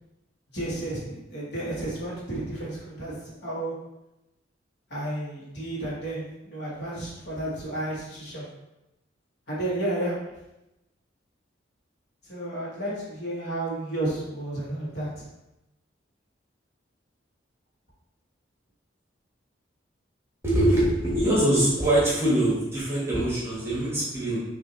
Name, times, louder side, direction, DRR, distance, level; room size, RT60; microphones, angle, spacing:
voice 1, 0.5-3.7 4.9-8.5 9.5-10.2 12.2-15.2, right 1 dB, 55° left, -6 dB, 1.4 m, -32 dB
voice 2, 20.4-24.4, right 1 dB, 15° right, -7 dB, 1.2 m, -23 dB
5.8 x 2.7 x 2.9 m, 0.94 s
head